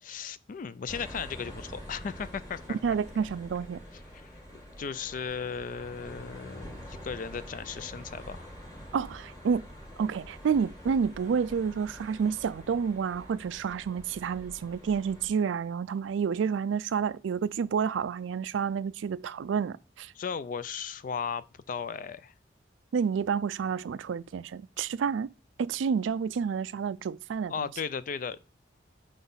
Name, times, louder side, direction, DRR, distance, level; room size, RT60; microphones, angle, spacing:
voice 1, 0.0-3.0 4.5-8.5 20.2-22.3 27.5-28.4, left 6 dB, 45° left, 0.3 m, -36 dB
sound 1, 0.9-15.3, equal, 20° left, 1.9 m, -46 dB
voice 2, 2.8-3.8 8.9-9.7 10.0-20.1 22.9-25.3 25.6-27.7, right 6 dB, 80° right, 0.3 m, -29 dB
5.0 x 4.0 x 5.5 m
head